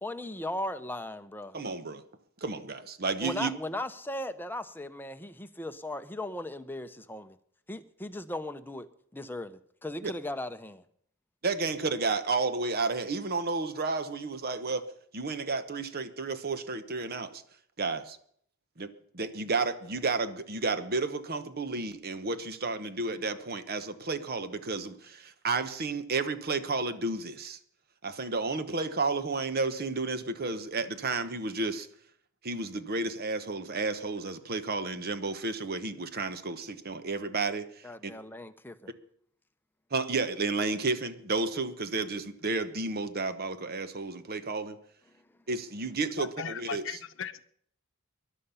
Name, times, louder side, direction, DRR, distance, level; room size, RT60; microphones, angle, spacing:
voice 1, 0.0-1.5 3.2-7.4 7.7-8.9 9.1-10.8 37.8-38.9, left 1 dB, 10° left, 9 dB, 0.8 m, -37 dB
voice 2, 1.5-2.0 2.4-3.5 10.0-10.1 11.4-14.9 15.1-17.4 17.8-18.2 18.8-18.9 19.1-27.6 28.0-31.9 32.4-38.1 39.9-44.8 45.5-46.8, right 3 dB, 50° right, 11 dB, 1.0 m, -32 dB
voice 3, 46.2-47.4, left 7 dB, 65° left, 11 dB, 0.8 m, -37 dB
20.0 x 11.0 x 5.7 m, 0.65 s
head